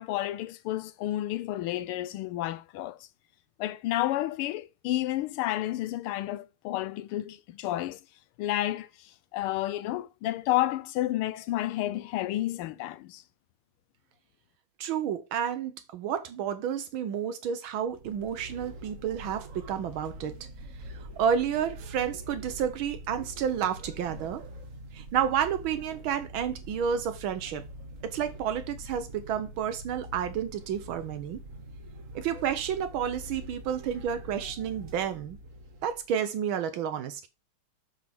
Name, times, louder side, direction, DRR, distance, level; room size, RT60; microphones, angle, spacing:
voice 1, 0.0-3.0 3.6-8.0 8.4-8.9 9.3-13.2, left 15 dB, 90° left, 1.5 m, -30 dB
voice 2, 14.8-20.5 20.9-24.4 24.9-27.6 28.0-31.4 32.1-35.4 35.8-37.3, right 8 dB, 75° right, 1.5 m, -30 dB
sound 1, 17.8-36.1, right 1 dB, 45° right, 1.3 m, -44 dB
7.4 x 3.5 x 5.9 m
omnidirectional pair, 2.3 m